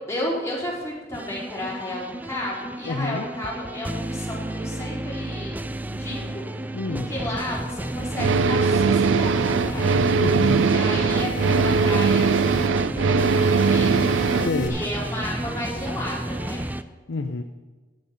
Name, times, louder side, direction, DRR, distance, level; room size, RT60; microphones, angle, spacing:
voice 1, 0.1-5.5 5.8-6.4 6.9-10.0 10.7-14.0 14.7-16.6, left 1 dB, 15° left, -5 dB, 3.9 m, -33 dB
sound 1, 1.1-16.8, right 1 dB, 10° right, 0.3 m, -31 dB
voice 2, 2.8-3.3 6.7-7.1 10.2-10.7 14.4-14.8 17.1-17.4, left 3 dB, 85° left, 6 dB, 0.6 m, -27 dB
sound 2, 7.6-8.7 9.2-10.7 11.2-12.7 13.2-14.7, right 1 dB, 45° left, 1.9 m, -36 dB
sound 3, 8.2-14.5, right 5 dB, 85° right, 0.4 m, -20 dB
13.0 x 9.7 x 5.2 m, 1.3 s
head